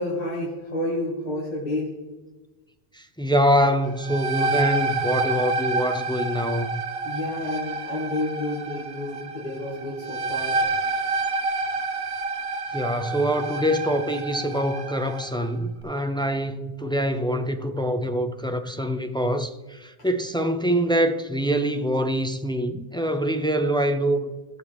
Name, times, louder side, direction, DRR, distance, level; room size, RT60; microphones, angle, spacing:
voice 1, 0.0-1.9 7.0-10.6, left 1 dB, 45° left, 2.2 m, -30 dB
voice 2, 2.9-6.8 12.7-24.3, equal, 5° left, 0.4 m, -24 dB
sound 1, 3.8-15.3, right 3 dB, 70° right, 1.0 m, -28 dB
17.5 x 6.7 x 3.4 m
omnidirectional pair, 1.1 m